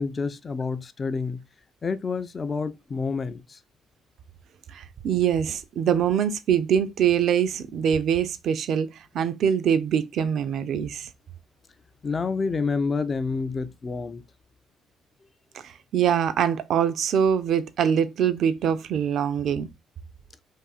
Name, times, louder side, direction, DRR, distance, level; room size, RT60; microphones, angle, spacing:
voice 1, 0.0-1.5 1.8-3.6 12.0-14.2, left 4 dB, 40° left, 0.3 m, -28 dB
voice 2, 4.7-11.1 15.5-19.7, right 8 dB, 65° right, 0.3 m, -24 dB
2.6 x 2.4 x 2.3 m
hypercardioid pair, 55°, 0 cm